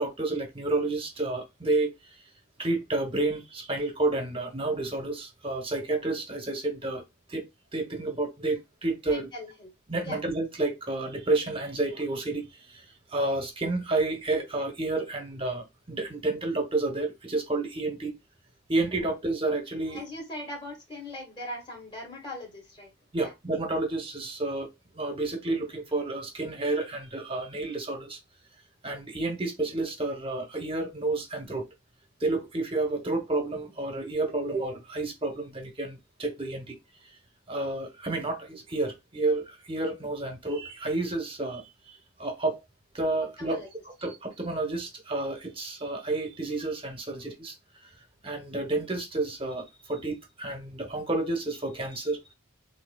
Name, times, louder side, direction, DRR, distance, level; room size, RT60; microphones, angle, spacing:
voice 1, 0.0-1.9 2.6-7.0 7.3-7.5 7.7-9.3 9.9-18.1 18.7-20.0 23.1-28.2 28.8-31.7 32.2-36.8 37.5-42.6 42.9-47.9 48.2-52.2, right 2 dB, 25° right, 0.8 m, -30 dB
voice 2, 9.1-9.7 10.0-10.2 19.9-22.9 23.2-23.3 43.4-43.7, left 1 dB, 25° left, 1.5 m, -40 dB
5.9 x 2.7 x 2.2 m
head